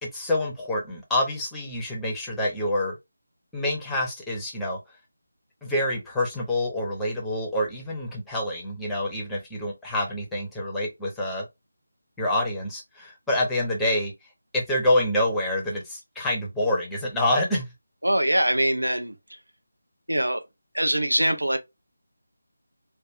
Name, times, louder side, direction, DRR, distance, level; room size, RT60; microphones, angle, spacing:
voice 1, 0.0-3.0 3.5-4.8 5.6-11.5 12.2-14.1 14.5-17.7, left 1 dB, 5° left, 0.7 m, -27 dB
voice 2, 18.0-19.4 20.1-20.4 20.7-21.6, right 1 dB, 80° right, 0.6 m, -23 dB
3.3 x 2.2 x 2.4 m
figure-of-eight pair, 160°, 0 cm